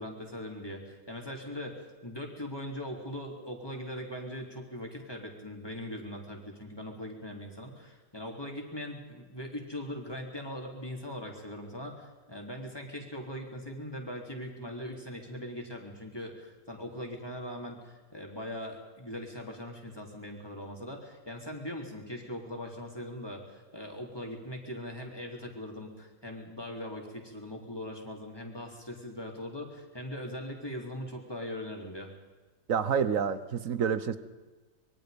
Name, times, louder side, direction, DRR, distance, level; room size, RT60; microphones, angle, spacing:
voice 1, 0.0-32.1, left 1 dB, 15° left, 1 dB, 3.7 m, -40 dB
voice 2, 32.7-34.2, right 7 dB, 55° right, 14 dB, 1.4 m, -28 dB
25.5 x 23.0 x 5.3 m, 1.3 s
omnidirectional pair, 1.8 m